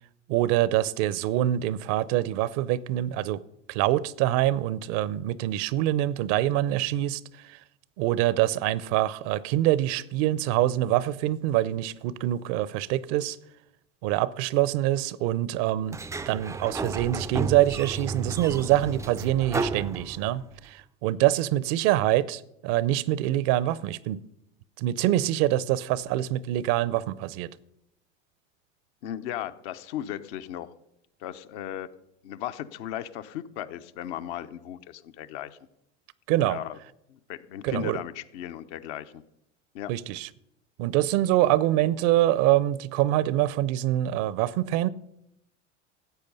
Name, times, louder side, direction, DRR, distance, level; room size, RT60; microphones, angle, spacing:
voice 1, 0.3-3.4 3.7-7.6 8.0-13.4 14.0-16.0 16.3-24.2 24.8-27.5 36.3-36.6 37.6-38.0 39.9-40.3 40.8-44.9, right 14 dB, 55° right, 0.7 m, -25 dB
Sliding door, 15.9-20.6, right 3 dB, 10° right, 0.4 m, -33 dB
voice 2, 29.0-30.7 31.2-31.9 32.2-35.6 36.5-36.8 37.1-39.2 39.7-39.9, left 11 dB, 65° left, 1.0 m, -36 dB
14.0 x 8.4 x 5.4 m
hypercardioid pair, 85°, 37 cm